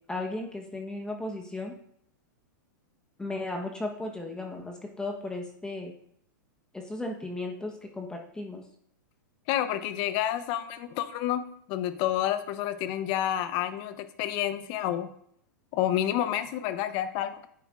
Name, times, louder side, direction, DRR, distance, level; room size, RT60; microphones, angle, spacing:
voice 1, 0.1-1.7 3.2-5.9 6.7-8.6, left 2 dB, 5° left, 2 dB, 1.0 m, -35 dB
voice 2, 9.5-15.1 15.7-17.5, left 12 dB, 45° left, 11 dB, 0.7 m, -29 dB
9.7 x 7.0 x 2.5 m, 0.67 s
hypercardioid pair, 125°, 11 cm